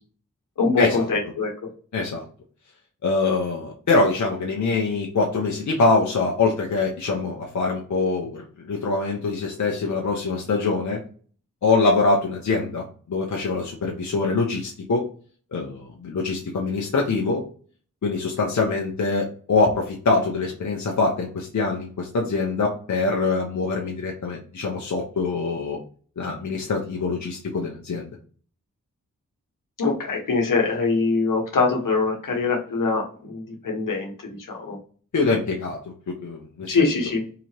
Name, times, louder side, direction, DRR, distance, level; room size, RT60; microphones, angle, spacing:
voice 1, 0.6-1.5 29.8-34.1 34.5-34.8 36.7-37.2, left 4 dB, 80° left, 0 dB, 1.3 m, -23 dB
voice 2, 1.9-2.2 3.0-11.0 11.6-15.0 15.5-17.4 18.0-25.8 26.2-28.1 35.1-35.8 36.2-36.8, left 3 dB, 60° left, -1 dB, 0.9 m, -24 dB
3.9 x 2.9 x 2.9 m, 0.42 s
cardioid pair, 50°, 32 cm